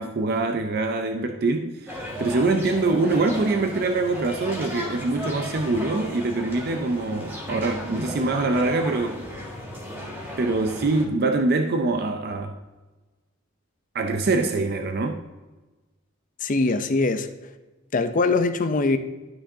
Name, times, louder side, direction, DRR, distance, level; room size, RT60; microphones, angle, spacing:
voice 1, 0.0-9.3 10.4-12.6 13.9-15.2, right 3 dB, 50° right, 0.5 m, -24 dB
sound 1, 1.9-11.1, left 1 dB, 10° right, 1.7 m, -35 dB
voice 2, 16.4-17.3 17.9-19.0, left 3 dB, 40° left, 0.5 m, -22 dB
12.0 x 6.2 x 2.7 m
head